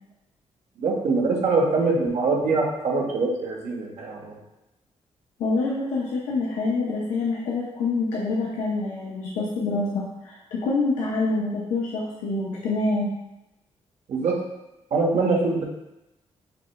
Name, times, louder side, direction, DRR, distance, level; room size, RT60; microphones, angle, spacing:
voice 1, 0.8-4.4 14.1-14.4 14.9-15.6, right 3 dB, 70° right, -1 dB, 1.0 m, -23 dB
voice 2, 5.4-13.2, left 3 dB, 90° left, -5 dB, 0.7 m, -26 dB
5.8 x 3.2 x 2.3 m, 0.93 s
cardioid pair, 70°, 12 cm